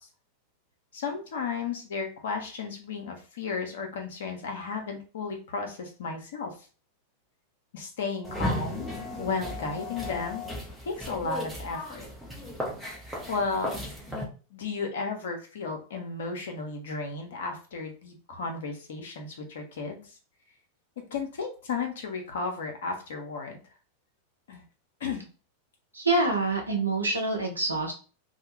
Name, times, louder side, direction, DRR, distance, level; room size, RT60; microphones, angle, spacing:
voice 1, 0.9-6.5 7.7-8.9 9.2-10.4 10.9-12.1 13.3-13.8 14.5-20.2 21.0-23.6 24.5-24.6 25.0-25.3, left 4 dB, 60° left, 3 dB, 0.7 m, -34 dB
sound 1, 8.2-14.3, left 1 dB, 5° right, 0.9 m, -35 dB
voice 2, 25.9-27.9, right 2 dB, 85° right, 1 dB, 0.7 m, -26 dB
2.3 x 2.2 x 3.0 m, 0.36 s
figure-of-eight pair, 90°, 0 cm